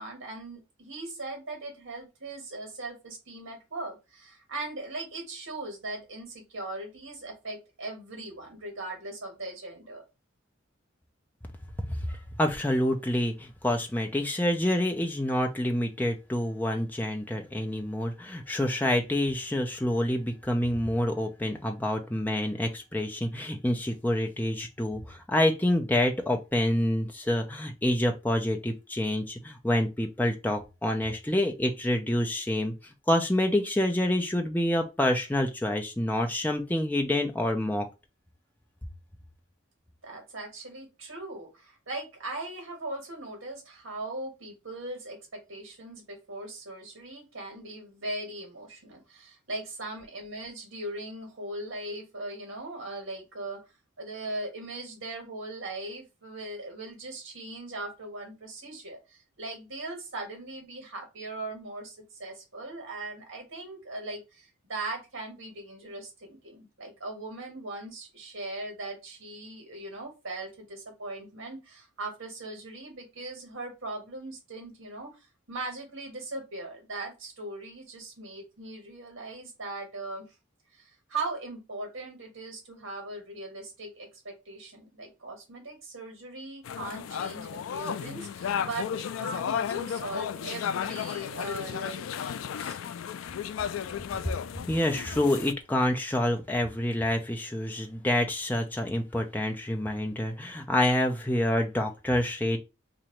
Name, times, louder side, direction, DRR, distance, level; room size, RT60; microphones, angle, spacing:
voice 1, 0.0-10.0 40.0-53.6 54.0-75.1 75.5-80.2 80.7-92.8, right 2 dB, 75° right, 1.6 m, -39 dB
voice 2, 11.9-32.7 33.1-37.9 94.1-94.3 94.7-102.6, left 1 dB, 10° left, 0.5 m, -27 dB
sound 1, 86.6-95.5, left 8 dB, 75° left, 0.3 m, -34 dB
2.9 x 2.6 x 4.4 m
head